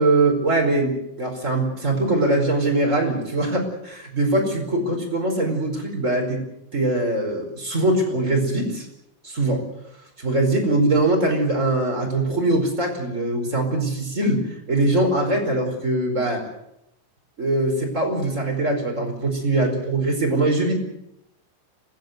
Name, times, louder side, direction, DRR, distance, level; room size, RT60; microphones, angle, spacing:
voice 1, 0.0-6.4 6.7-8.9 9.2-9.6 10.2-14.4 14.7-16.4 17.4-20.7, right 2 dB, 15° right, 2 dB, 4.4 m, -22 dB
25.5 x 17.5 x 8.0 m, 0.83 s
omnidirectional pair, 5.9 m